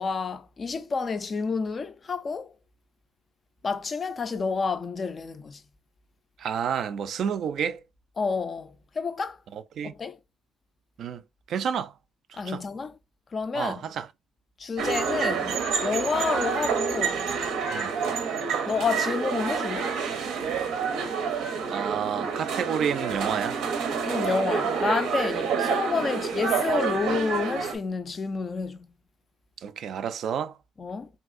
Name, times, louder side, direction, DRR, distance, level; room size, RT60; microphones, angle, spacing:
voice 1, 0.0-2.5 3.6-5.6 8.2-9.4 9.8-10.2 12.3-13.0 13.3-13.8 14.6-17.3 18.7-19.9 24.1-28.9 30.8-31.1, left 5 dB, 30° left, 0.3 m, -29 dB
voice 2, 6.4-7.8 9.5-9.9 11.0-11.2 11.5-11.9 12.3-12.6 13.5-14.1 17.7-17.9 21.7-23.6 29.6-30.6, right 8 dB, 55° right, 0.3 m, -30 dB
sound 1, 14.8-27.7, right 6 dB, 90° right, 0.7 m, -28 dB
3.4 x 2.6 x 2.4 m
cardioid pair, 155°, 0 cm